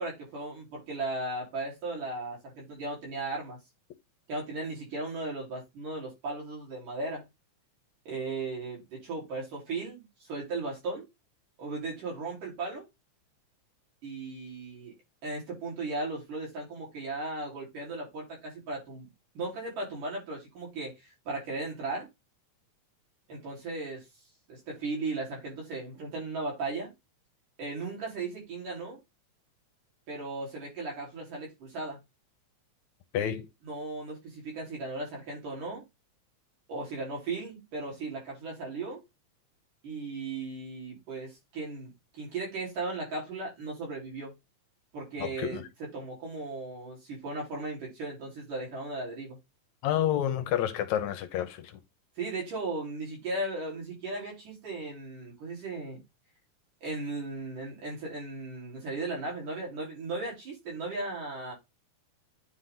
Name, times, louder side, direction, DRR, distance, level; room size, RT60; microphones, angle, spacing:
voice 1, 0.0-3.6 4.3-7.3 8.1-11.1 11.6-12.9 14.0-14.9 15.2-19.1 19.4-22.1 23.3-24.0 24.5-26.9 27.6-29.0 30.1-32.0 33.6-35.8 36.7-39.0 39.8-44.3 44.9-49.4 52.2-56.0 56.8-61.5, right 3 dB, 90° right, 5.8 m, -36 dB
voice 2, 33.1-33.5 45.2-45.6 49.8-51.8, left 11 dB, 75° left, 2.0 m, -29 dB
9.4 x 3.8 x 3.9 m
omnidirectional pair, 3.6 m